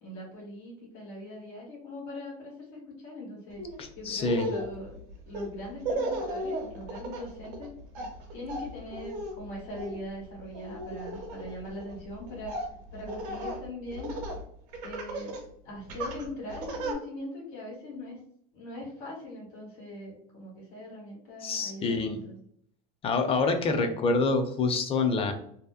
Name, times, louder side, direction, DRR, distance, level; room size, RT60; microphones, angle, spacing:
voice 1, 0.0-3.6 3.9-5.0 5.3-7.7 8.3-12.6 12.9-14.1 14.8-15.4 15.6-18.2 18.5-22.4, left 1 dB, 65° left, -5 dB, 1.3 m, -41 dB
Laughter, 3.6-3.8 4.2-14.4 14.7-15.4 15.9-16.9, right 1 dB, 75° right, 0.8 m, -36 dB
voice 2, 3.8-4.5 21.4-22.2 23.0-25.3, left 3 dB, 30° left, 6 dB, 0.4 m, -26 dB
2.7 x 2.1 x 2.4 m, 0.68 s
supercardioid pair, 105°, 20 cm